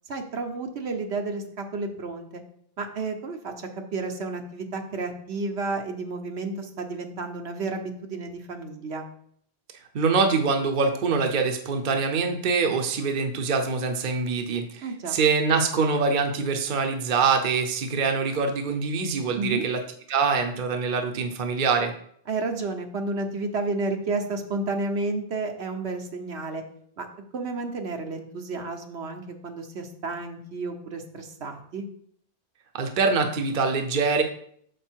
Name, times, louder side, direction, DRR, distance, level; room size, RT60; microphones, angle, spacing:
voice 1, 0.1-2.4 2.8-9.1 14.8-15.2 19.3-19.7 22.3-26.6 27.0-27.1 27.3-31.8, right 3 dB, 80° right, 4 dB, 1.2 m, -31 dB
voice 2, 9.9-19.8 20.1-21.9 32.7-34.2, right 4 dB, 55° right, 5 dB, 0.9 m, -24 dB
6.6 x 5.1 x 4.5 m, 0.64 s
omnidirectional pair, 1.1 m